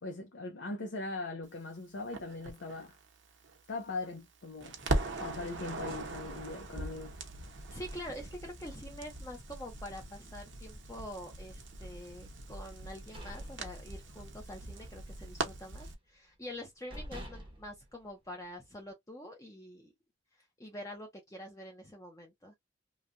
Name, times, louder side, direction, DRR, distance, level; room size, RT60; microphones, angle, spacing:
voice 1, 0.0-3.0 3.7-4.8 5.2-7.2, left 3 dB, 70° left, 0.6 m, -40 dB
Crackle, 2.1-4.3 4.6-15.9, right 2 dB, 65° right, 0.8 m, -40 dB
voice 2, 7.7-19.9 20.6-22.5, left 1 dB, 15° left, 0.7 m, -46 dB
sound 1, 12.8-14.4 14.7-15.0 15.3-16.1 16.5-16.6 16.9-18.7, equal, 25° right, 0.8 m, -47 dB
3.2 x 2.2 x 2.5 m
head